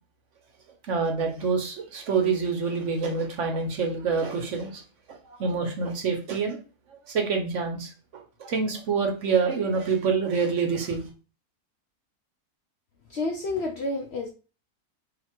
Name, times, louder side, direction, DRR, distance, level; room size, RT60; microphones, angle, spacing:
voice 1, 0.9-4.8 5.4-6.6 7.1-7.9 8.4-11.0, right 5 dB, 60° right, 3 dB, 1.0 m, -26 dB
voice 2, 13.1-14.3, left 2 dB, 60° left, 2 dB, 0.7 m, -29 dB
2.9 x 2.8 x 4.3 m, 0.35 s
omnidirectional pair, 1.6 m